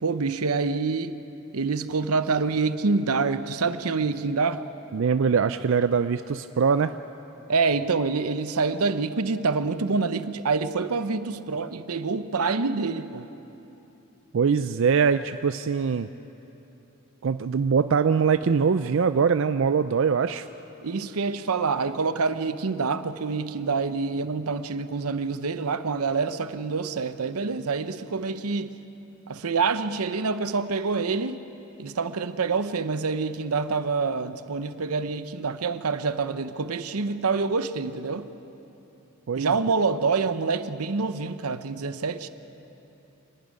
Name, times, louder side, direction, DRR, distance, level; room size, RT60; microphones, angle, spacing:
voice 1, 0.0-1.2 1.5-4.6 7.5-13.3 20.8-28.8 29.3-31.4 31.8-38.3 39.3-42.3, right 4 dB, 90° right, 11 dB, 0.8 m, -26 dB
voice 2, 4.9-6.9 14.3-16.1 17.2-20.5 39.3-39.5, right 6 dB, 60° right, 11 dB, 0.4 m, -22 dB
25.5 x 11.5 x 9.7 m, 3.0 s
head